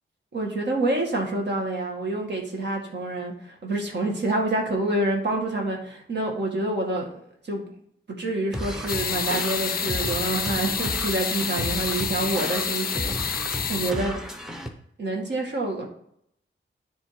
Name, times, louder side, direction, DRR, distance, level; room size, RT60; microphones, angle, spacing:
voice 1, 0.3-7.7 8.1-14.2 15.0-15.9, right 2 dB, 55° right, 0 dB, 1.9 m, -27 dB
sound 1, 8.5-14.7, equal, ahead, 0.8 m, -33 dB
sound 2, 8.9-13.9, left 7 dB, 45° left, 0.4 m, -28 dB
10.0 x 3.7 x 4.8 m, 0.69 s
wide cardioid pair, 175°, 21 cm